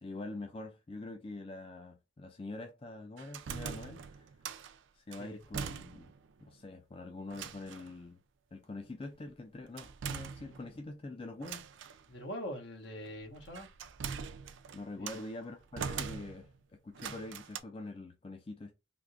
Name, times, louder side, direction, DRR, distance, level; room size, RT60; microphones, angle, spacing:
voice 1, 0.0-4.3 4.9-6.1 6.4-8.2 8.5-11.7 14.7-16.5 16.8-18.7, left 2 dB, 30° left, 0.4 m, -45 dB
sound 1, 3.2-4.7 5.1-6.2 6.5-6.6 7.3-7.9 9.8-10.9 11.4-12.0 13.1-15.3 15.8-16.6 16.9-17.6, right 6 dB, 75° right, 0.4 m, -42 dB
voice 2, 12.1-13.7 15.0-15.3, equal, 70° left, 1.2 m, -43 dB
3.6 x 2.7 x 2.4 m
head